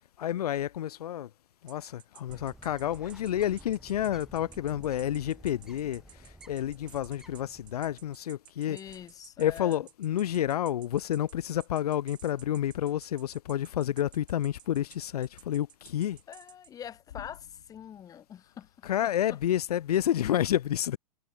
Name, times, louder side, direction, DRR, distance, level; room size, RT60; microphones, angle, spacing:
voice 1, 0.2-1.3 1.6-8.8 9.4-16.2 18.8-21.0, left 11 dB, 75° left, 2.0 m, -30 dB
sound 1, 1.7-16.7, right 12 dB, 20° right, 5.8 m, -54 dB
Bird, 2.3-8.2, right 1 dB, ahead, 6.3 m, -53 dB
voice 2, 8.7-9.8 16.3-18.9 19.3-19.4, left 9 dB, 20° left, 4.1 m, -44 dB
hypercardioid pair, 155°, 20 cm